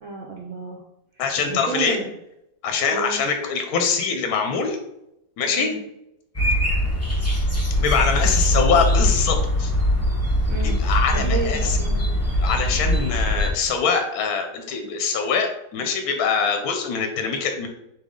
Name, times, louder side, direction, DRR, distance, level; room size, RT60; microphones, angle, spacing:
voice 1, 0.0-0.8 1.5-2.1 2.9-3.2 5.5-5.8 8.4-8.5 10.5-12.2, right 3 dB, 65° right, 0 dB, 0.7 m, -32 dB
voice 2, 1.2-2.0 2.6-4.8 5.4-5.7 7.8-9.7 10.8-11.8 12.4-17.7, left 5 dB, 70° left, 5 dB, 1.0 m, -23 dB
sound 1, 6.3-13.5, equal, 15° left, 0.5 m, -21 dB
4.1 x 3.0 x 3.6 m, 0.84 s
omnidirectional pair, 1.8 m